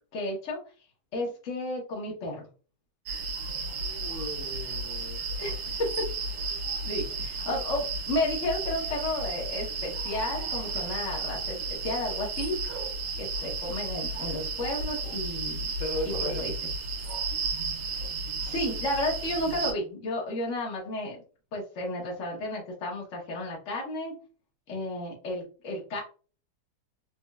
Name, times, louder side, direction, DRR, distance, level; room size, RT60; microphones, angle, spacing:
voice 1, 0.1-0.6 1.1-2.5 5.4-5.9 6.8-12.7 13.2-15.7 16.0-16.5 18.4-21.2 21.5-24.1 24.7-26.0, left 1 dB, 45° left, -2 dB, 1.3 m, -32 dB
sound 1, 3.1-19.7, right 3 dB, 80° right, 1.6 m, -33 dB
voice 2, 3.8-5.2 15.8-16.5, left 1 dB, 80° left, 3 dB, 1.5 m, -36 dB
4.3 x 2.5 x 2.4 m, 0.37 s
omnidirectional pair, 2.2 m